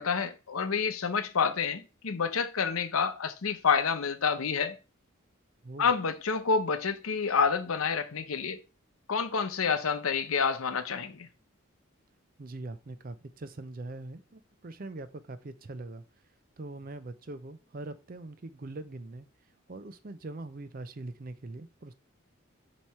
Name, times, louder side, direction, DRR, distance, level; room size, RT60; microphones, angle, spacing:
voice 1, 0.0-4.8 5.8-8.6 9.1-11.3, left 5 dB, 80° left, 0.7 m, -28 dB
voice 2, 12.4-16.0 16.6-19.3 19.7-21.9, right 2 dB, 40° right, 0.5 m, -42 dB
7.2 x 3.0 x 4.7 m
head